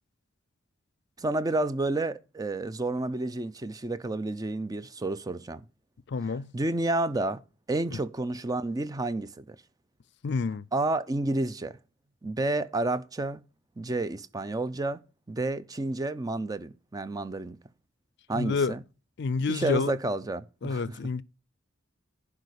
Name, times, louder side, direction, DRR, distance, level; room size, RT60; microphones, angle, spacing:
voice 1, 1.2-5.6 6.5-7.4 7.7-9.6 10.7-11.8 12.2-13.4 13.8-15.0 15.3-17.6 18.3-18.8 19.5-21.0, right 2 dB, 20° right, 0.5 m, -30 dB
voice 2, 6.1-6.5 10.2-10.7 18.3-18.7 19.2-19.9 20.6-21.2, left 4 dB, 60° left, 0.4 m, -28 dB
11.0 x 4.9 x 6.4 m
head